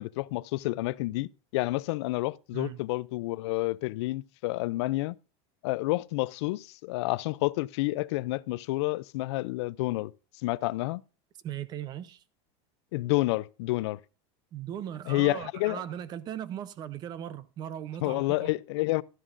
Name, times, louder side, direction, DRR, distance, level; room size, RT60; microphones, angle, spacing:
voice 1, 0.0-5.1 5.6-10.1 10.4-11.0 12.9-14.0 15.1-15.8 18.0-19.0, left 20 dB, 70° left, 0.4 m, -29 dB
voice 2, 11.4-12.2 14.5-18.5, right 10 dB, 25° right, 0.6 m, -38 dB
12.0 x 11.0 x 2.5 m
supercardioid pair, 165°, 15 cm